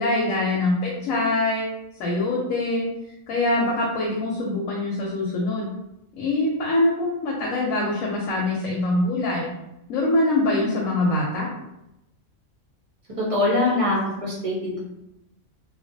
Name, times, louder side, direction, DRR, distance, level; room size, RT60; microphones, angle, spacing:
voice 1, 0.0-1.7 2.0-2.9 3.3-5.7 6.1-9.5 9.9-11.5, left 2 dB, 90° left, -3 dB, 1.0 m, -23 dB
voice 2, 13.2-14.8, left 2 dB, 45° right, -5 dB, 0.4 m, -23 dB
2.4 x 2.0 x 2.6 m, 0.88 s
omnidirectional pair, 1.4 m